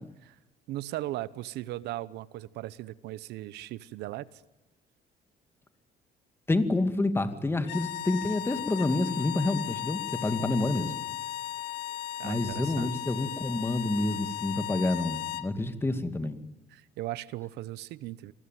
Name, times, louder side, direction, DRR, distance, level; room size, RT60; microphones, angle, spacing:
voice 1, 0.7-4.4 12.2-12.9 16.7-18.3, right 15 dB, 85° right, 18 dB, 1.1 m, -38 dB
voice 2, 6.5-10.9 12.2-16.4, left 2 dB, 15° left, 9 dB, 2.3 m, -28 dB
sound 1, 7.6-15.5, left 14 dB, 90° left, 1.4 m, -36 dB
27.5 x 21.0 x 9.3 m, 1.1 s
cardioid pair, 110°, 17 cm